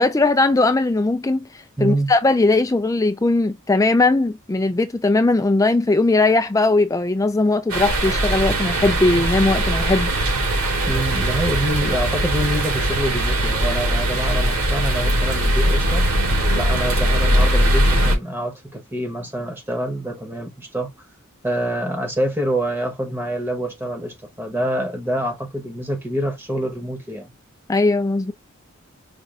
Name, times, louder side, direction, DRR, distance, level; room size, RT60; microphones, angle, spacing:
voice 1, 0.0-10.1 27.7-28.3, left 2 dB, 15° left, 0.3 m, -19 dB
voice 2, 1.8-2.1 10.9-16.1 16.6-20.9 21.4-27.3, right 1 dB, 10° right, 0.9 m, -26 dB
sound 1, 7.7-18.2, right 1 dB, 75° right, 2.3 m, -20 dB
5.2 x 2.6 x 3.5 m
head